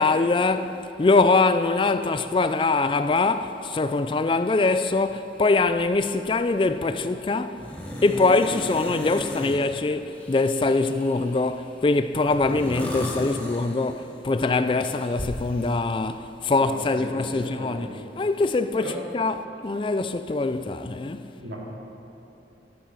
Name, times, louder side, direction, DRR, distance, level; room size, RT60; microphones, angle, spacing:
voice 1, 0.0-7.6 8.0-21.3, left 3 dB, 30° left, 0.3 m, -23 dB
sound 1, 6.6-6.7 7.6-9.6 10.1-11.5 12.2-14.2 14.8-15.7, left 1 dB, 10° left, 1.3 m, -35 dB
voice 2, 16.4-18.0 18.8-19.0 21.4-21.6, right 1 dB, 90° right, 2.9 m, -38 dB
12.5 x 8.8 x 6.3 m
head